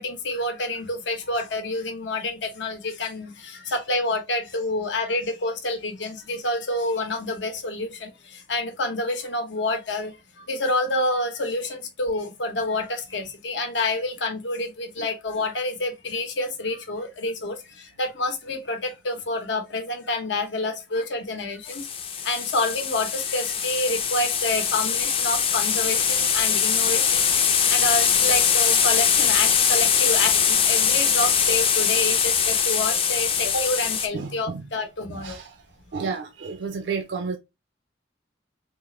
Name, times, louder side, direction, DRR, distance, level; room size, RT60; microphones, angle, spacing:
voice 1, 0.0-21.9 22.2-35.4, left 2 dB, 75° left, 0.9 m, -28 dB
sound 1, 21.7-34.1, left 7 dB, 30° left, 0.4 m, -22 dB
voice 2, 34.1-34.6 35.1-35.5 35.9-37.4, right 5 dB, 70° right, 0.4 m, -31 dB
3.7 x 2.4 x 3.0 m
head